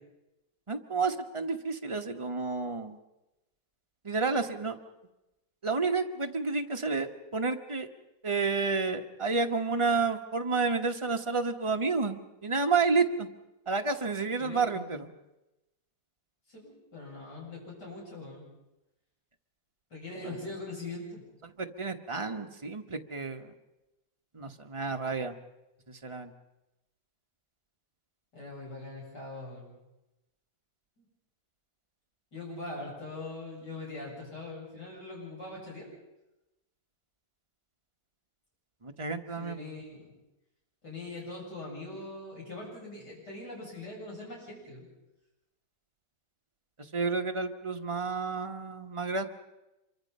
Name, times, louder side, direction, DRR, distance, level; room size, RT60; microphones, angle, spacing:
voice 1, 0.7-3.0 4.0-4.8 5.6-7.9 8.2-13.3 13.7-15.1 21.4-23.5 24.3-25.3 25.9-26.3 38.8-39.6 46.8-49.2, right 4 dB, 20° right, 4 dB, 1.0 m, -30 dB
voice 2, 14.4-14.9 16.5-18.4 19.9-21.2 28.3-29.7 31.0-31.1 32.3-35.9 39.4-40.1 40.8-44.9, left 2 dB, 60° left, -3 dB, 8.7 m, -42 dB
26.0 x 24.0 x 5.5 m, 0.95 s
omnidirectional pair, 2.0 m